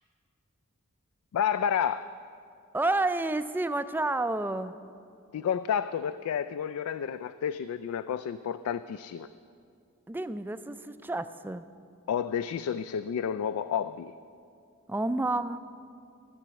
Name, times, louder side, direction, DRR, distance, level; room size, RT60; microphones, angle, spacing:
voice 1, 1.3-2.1 5.3-9.3 12.1-14.1, left 8 dB, 80° left, 14 dB, 0.3 m, -30 dB
voice 2, 2.7-4.8 10.1-11.7 14.9-15.6, right 2 dB, 10° right, 11 dB, 0.3 m, -30 dB
13.0 x 7.2 x 6.9 m, 2.4 s
head